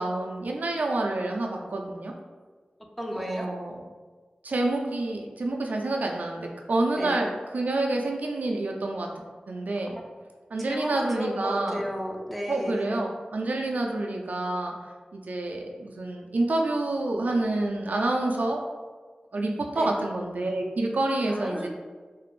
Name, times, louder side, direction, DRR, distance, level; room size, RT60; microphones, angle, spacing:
voice 1, 0.0-2.1 3.2-3.8 4.4-6.4 6.7-7.3 7.5-9.1 9.5-10.0 10.5-11.8 12.5-14.7 15.1-18.6 19.3-21.7, right 2 dB, 70° right, 1 dB, 0.3 m, -28 dB
voice 2, 3.0-3.5 6.9-7.2 10.6-12.9 19.8-19.9 21.3-21.7, equal, ahead, 0 dB, 0.4 m, -33 dB
2.4 x 2.0 x 3.1 m, 1.4 s
wide cardioid pair, 55°, 3 cm